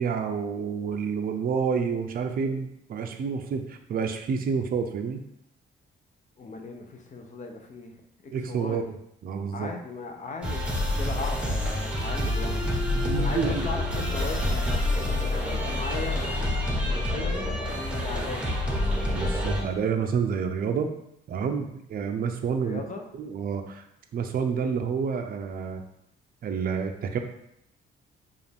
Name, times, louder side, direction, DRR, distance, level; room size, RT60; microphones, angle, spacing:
voice 1, 0.0-5.2 8.3-8.8 9.2-9.7 13.0-13.7 19.1-20.9 21.3-22.8 23.2-23.8 24.1-25.8 26.4-27.2, right 6 dB, 50° right, 5 dB, 0.5 m, -29 dB
voice 2, 6.4-8.8 9.5-12.7 13.1-16.6 16.8-18.5 22.6-23.1, left 3 dB, 40° left, 3 dB, 0.7 m, -38 dB
sound 1, 10.4-19.6, left 1 dB, 5° right, 1.0 m, -27 dB
4.9 x 2.5 x 3.4 m, 0.77 s
cardioid pair, 90°, 20 cm